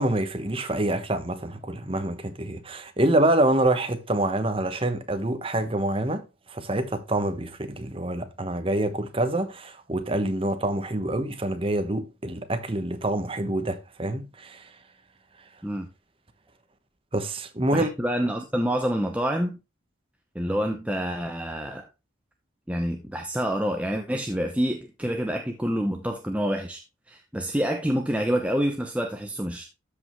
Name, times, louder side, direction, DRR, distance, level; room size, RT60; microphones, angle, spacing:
voice 1, 0.0-14.7 17.1-17.9, right 1 dB, 30° right, 1.1 m, -26 dB
voice 2, 17.7-19.6 20.3-21.9 22.7-26.8 27.1-29.6, equal, 5° right, 0.8 m, -27 dB
13.0 x 5.4 x 3.1 m
head